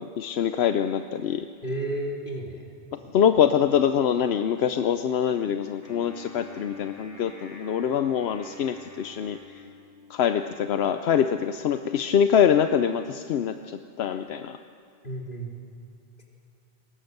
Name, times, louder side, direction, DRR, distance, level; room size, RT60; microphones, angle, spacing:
voice 1, 0.0-1.5 2.9-9.4 10.1-14.6, left 8 dB, 85° left, 9 dB, 0.9 m, -24 dB
voice 2, 1.6-2.6 15.0-15.5 16.2-16.3, right 1 dB, 55° left, -2 dB, 3.5 m, -32 dB
Wind instrument woodwind instrument, 5.8-10.3, left 1 dB, 15° right, 3.8 m, -47 dB
20.5 x 18.0 x 7.9 m, 2.6 s
omnidirectional pair, 1.0 m